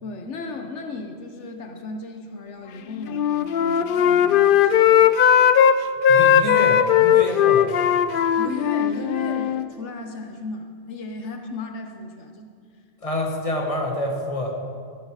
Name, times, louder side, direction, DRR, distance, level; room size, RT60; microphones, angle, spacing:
voice 1, 0.0-5.1 8.3-12.5, left 3 dB, 85° left, 5 dB, 1.3 m, -35 dB
Wind instrument woodwind instrument, 3.0-5.8 6.0-9.7, left 9 dB, 60° left, 0.6 m, -18 dB
voice 2, 6.1-7.7 13.0-14.5, left 1 dB, 30° left, 1 dB, 1.7 m, -27 dB
15.5 x 9.2 x 4.9 m, 2.1 s
omnidirectional pair, 1.2 m